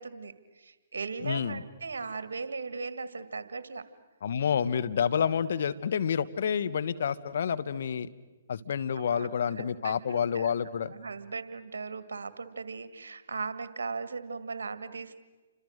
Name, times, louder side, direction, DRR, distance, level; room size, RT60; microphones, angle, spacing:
voice 1, 0.0-3.9 9.0-10.5 10.9-15.2, right 4 dB, 75° right, 13 dB, 1.9 m, -38 dB
voice 2, 1.2-1.6 4.2-8.1 8.5-10.9, left 7 dB, 60° left, 13 dB, 1.2 m, -29 dB
30.0 x 26.0 x 6.5 m, 1.3 s
hypercardioid pair, 130°, 0 cm